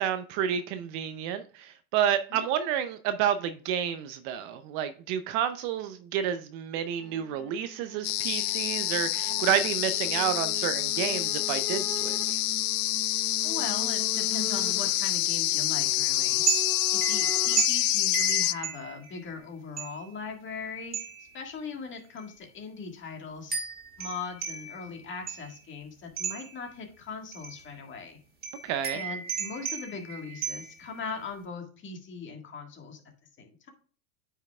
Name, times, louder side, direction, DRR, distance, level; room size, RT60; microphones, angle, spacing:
voice 1, 0.0-12.4 28.6-29.0, right 9 dB, 40° right, 0.6 m, -30 dB
sound 1, 7.0-17.7, left 3 dB, 5° left, 0.3 m, -43 dB
sound 2, 8.0-18.5, left 18 dB, 70° left, 0.6 m, -27 dB
voice 2, 13.4-16.4 16.9-21.0 21.3-23.6 24.0-28.2 28.9-33.0 33.4-33.7, left 4 dB, 25° left, 1.7 m, -39 dB
sound 3, 16.5-19.3 19.8-20.2 20.9-21.4 22.2-22.3 23.5-25.6 26.2-26.7 27.3-27.7 28.4-31.0, right 7 dB, 20° right, 1.8 m, -34 dB
9.1 x 5.6 x 2.3 m
supercardioid pair, 130°, 46 cm